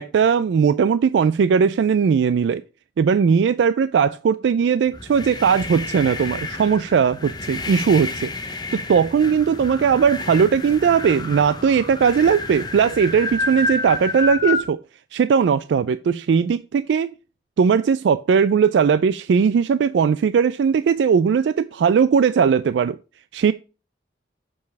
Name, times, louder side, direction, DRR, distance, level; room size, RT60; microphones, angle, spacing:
voice 1, 0.0-2.6 3.0-8.3 8.7-14.8 15.1-17.1 17.6-23.0 23.3-23.5, right 6 dB, 85° right, 0.3 m, -18 dB
sound 1, 4.9-14.7, left 3 dB, 25° left, 0.8 m, -30 dB
6.8 x 5.4 x 4.6 m
head